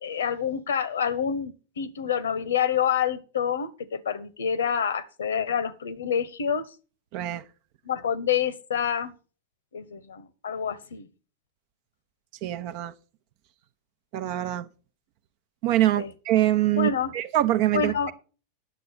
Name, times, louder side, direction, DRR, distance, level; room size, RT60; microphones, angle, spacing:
voice 1, 0.0-6.7 7.8-9.1 9.7-11.1 16.0-16.1 16.7-17.1 17.7-18.1, left 7 dB, 65° left, 1.0 m, -27 dB
voice 2, 7.1-7.4 12.4-12.9 14.1-14.7 15.6-18.1, right 14 dB, 45° right, 0.7 m, -24 dB
11.0 x 7.7 x 5.8 m
figure-of-eight pair, 90°, 0 cm